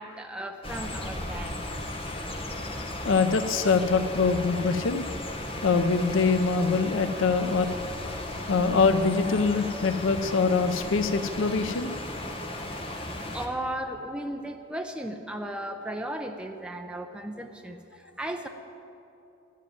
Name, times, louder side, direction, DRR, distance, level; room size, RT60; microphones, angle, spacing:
voice 1, 0.0-1.6 13.3-18.5, right 1 dB, 5° right, 4 dB, 0.5 m, -35 dB
sound 1, 0.6-13.5, left 1 dB, 30° left, 1.1 m, -35 dB
voice 2, 3.0-5.0 5.6-7.7 8.0-8.1 8.5-11.9 12.5-12.6, left 4 dB, 90° left, 10 dB, 0.6 m, -24 dB
11.5 x 7.5 x 9.2 m, 2.9 s
head